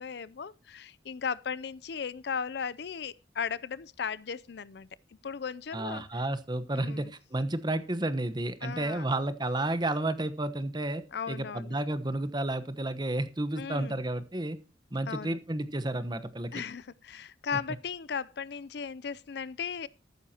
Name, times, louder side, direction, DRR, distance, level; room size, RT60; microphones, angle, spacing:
voice 1, 0.0-4.9 5.2-6.0 6.7-7.1 8.6-9.1 11.1-11.8 13.6-14.0 15.1-15.4 16.5-19.9, left 6 dB, 60° left, 0.5 m, -36 dB
voice 2, 5.7-11.0 11.3-14.6 14.9-16.6, right 1 dB, 25° right, 1.1 m, -31 dB
14.0 x 12.0 x 2.9 m
head